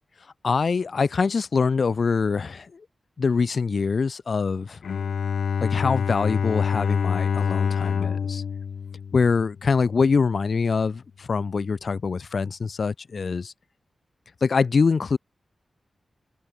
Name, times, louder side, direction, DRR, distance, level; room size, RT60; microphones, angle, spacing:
voice 1, 0.4-2.9 3.2-4.8 5.6-8.4 9.1-13.5 14.4-15.2, left 5 dB, 55° left, 4.0 m, -24 dB
Bowed string instrument, 4.8-9.8, left 6 dB, 85° left, 6.9 m, -26 dB
open air
wide cardioid pair, 120°, 0 cm